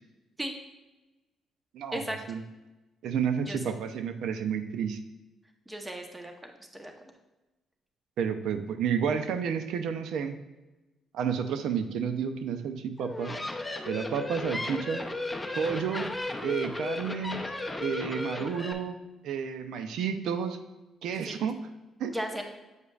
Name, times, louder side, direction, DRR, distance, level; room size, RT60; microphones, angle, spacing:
voice 1, 1.9-2.2 3.5-3.6 5.7-6.9 21.2-21.3 22.1-22.4, equal, 15° right, 4 dB, 0.9 m, -36 dB
voice 2, 3.0-5.0 8.2-10.4 11.1-13.3 13.9-15.0 15.6-16.1 16.4-17.5 17.8-19.0 19.2-20.6 21.0-21.6 22.0-22.1, right 7 dB, 80° right, 9 dB, 0.5 m, -30 dB
sound 1, 13.0-18.7, left 2 dB, 15° left, 0.6 m, -35 dB
8.0 x 5.1 x 2.4 m, 1.1 s
cardioid pair, 90°, 0 cm